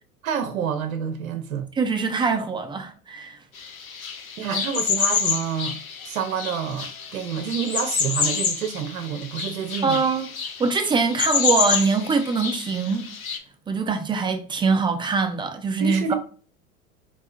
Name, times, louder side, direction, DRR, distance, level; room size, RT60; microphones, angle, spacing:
voice 1, 0.2-1.7 4.4-5.8 6.0-10.0 15.8-16.1, right 7 dB, 75° right, 0.6 m, -28 dB
voice 2, 1.8-3.4 9.8-10.3 10.6-13.1 13.7-16.1, right 4 dB, 10° right, 0.4 m, -23 dB
sound 1, 3.6-13.4, left 6 dB, 85° left, 0.7 m, -28 dB
4.6 x 2.7 x 2.4 m
figure-of-eight pair, 80°, 41 cm